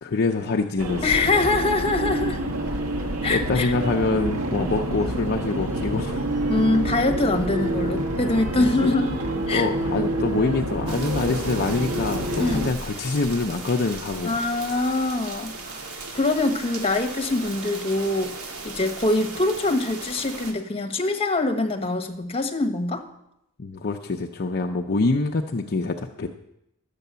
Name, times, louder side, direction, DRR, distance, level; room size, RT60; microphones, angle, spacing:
voice 1, 0.0-1.1 3.3-6.2 6.6-6.7 8.6-8.9 9.5-14.5 23.6-26.3, left 3 dB, 45° left, 3 dB, 0.6 m, -25 dB
sound 1, 0.8-12.7, right 1 dB, 70° right, 1.5 m, -27 dB
voice 2, 1.0-2.4 3.2-3.7 6.5-9.2 9.5-9.7 12.4-12.7 14.2-15.8 16.1-23.0, left 2 dB, 25° left, 6 dB, 1.3 m, -24 dB
sound 2, 10.9-20.5, right 3 dB, 85° right, 2.2 m, -37 dB
12.0 x 8.3 x 6.8 m, 0.82 s
head